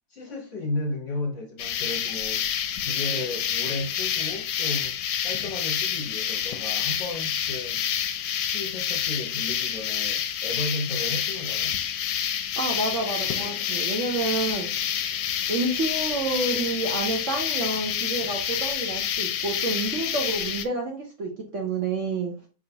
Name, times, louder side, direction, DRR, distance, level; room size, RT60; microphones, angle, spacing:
voice 1, 0.1-2.5 2.8-5.0 5.2-7.8 8.3-11.8, left 2 dB, 50° left, 1.0 m, -34 dB
sound 1, 1.6-20.6, left 9 dB, 75° left, 1.2 m, -28 dB
voice 2, 12.6-14.7 15.5-22.3, right 3 dB, 55° right, 1.0 m, -29 dB
4.9 x 3.7 x 2.8 m
omnidirectional pair, 2.0 m